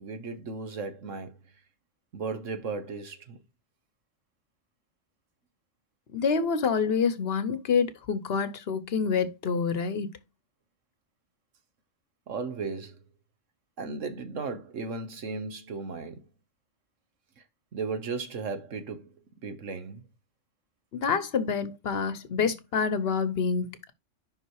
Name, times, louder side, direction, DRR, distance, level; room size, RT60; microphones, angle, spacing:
voice 1, 0.0-1.4 2.1-3.4 12.3-13.0 13.8-16.3 17.4-17.5 17.7-19.1 19.4-20.0, right 4 dB, 80° right, 1.5 m, -35 dB
voice 2, 6.1-10.1 20.9-23.9, left 5 dB, 55° left, 1.0 m, -27 dB
5.6 x 5.5 x 4.7 m
omnidirectional pair, 1.3 m